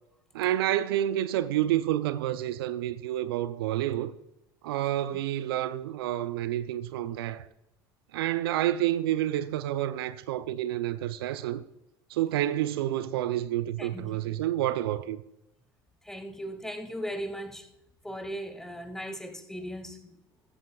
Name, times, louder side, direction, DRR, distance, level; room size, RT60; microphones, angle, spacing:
voice 1, 0.3-4.1 4.6-7.5 8.1-11.6 12.1-15.2, right 13 dB, 75° right, 0.5 m, -29 dB
voice 2, 13.8-14.4 16.0-17.7 18.0-20.2, equal, 5° left, 1.9 m, -38 dB
15.0 x 13.5 x 2.3 m
hypercardioid pair, 75°, 13 cm